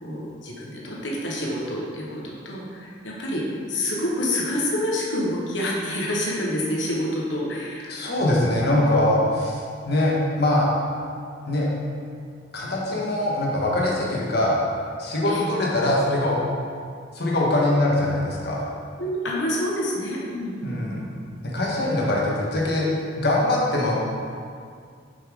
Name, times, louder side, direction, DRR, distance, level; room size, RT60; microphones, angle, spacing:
voice 1, 0.0-8.7 12.6-13.0 15.3-15.5 19.0-21.0, left 1 dB, 85° left, -4 dB, 1.4 m, -28 dB
voice 2, 7.9-10.7 11.4-11.7 12.5-14.6 15.0-16.4 17.1-18.7 20.6-21.1 21.4-23.9, left 1 dB, 60° left, -3 dB, 1.4 m, -22 dB
6.9 x 5.6 x 3.8 m, 2.2 s
head